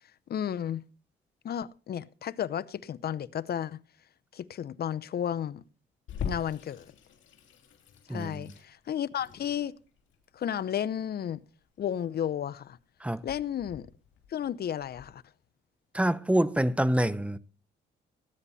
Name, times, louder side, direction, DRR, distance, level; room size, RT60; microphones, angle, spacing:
voice 1, 0.3-0.8 1.4-3.8 4.3-5.6 6.2-6.9 8.1-9.7 10.3-11.4 11.8-12.8 13.2-13.9 14.3-15.2, left 9 dB, 55° left, 0.7 m, -33 dB
Water tap faucet / Sink (filling or washing), 6.1-15.1, left 6 dB, 70° left, 2.8 m, -44 dB
voice 2, 15.9-17.4, right 1 dB, 5° right, 0.8 m, -26 dB
19.0 x 9.8 x 4.2 m
cardioid pair, 90°, 20 cm